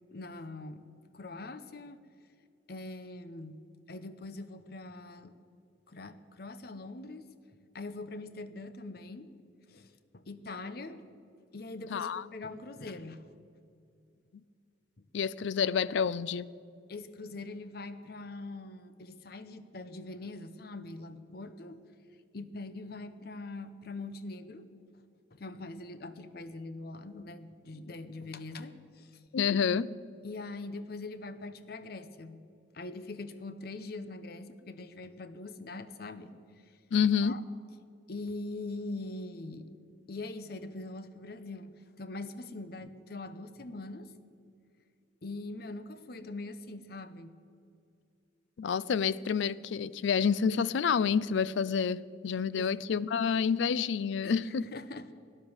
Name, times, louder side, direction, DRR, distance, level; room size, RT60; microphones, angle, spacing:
voice 1, 0.1-0.9 1.1-2.0 2.7-3.6 3.9-5.3 5.9-7.3 7.7-9.3 9.7-11.0 11.5-13.3 15.0-15.1 16.9-21.8 22.3-24.7 25.3-29.2 30.2-32.4 32.7-36.3 36.7-36.8 37.2-37.4 38.1-39.7 40.1-44.1 45.2-47.3 52.5-52.8 54.2-55.1, left 2 dB, 55° left, 0.7 m, -42 dB
voice 2, 11.9-12.2 15.1-16.5 29.3-29.9 36.9-37.4 48.6-54.7, left 6 dB, 75° left, 0.4 m, -28 dB
13.0 x 9.9 x 7.1 m
head